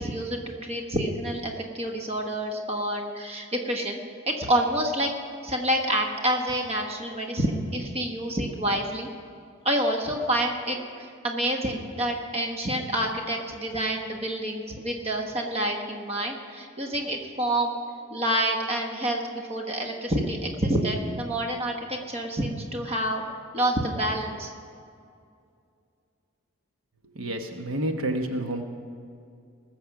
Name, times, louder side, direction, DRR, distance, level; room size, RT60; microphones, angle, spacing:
voice 1, 0.0-4.0 4.3-5.1 5.4-9.1 9.6-17.7 18.1-23.2 23.5-24.5, right 1 dB, 30° right, 2 dB, 1.3 m, -28 dB
voice 2, 27.1-28.6, right 1 dB, 80° right, 5 dB, 1.1 m, -29 dB
19.5 x 7.4 x 5.9 m, 2.4 s
head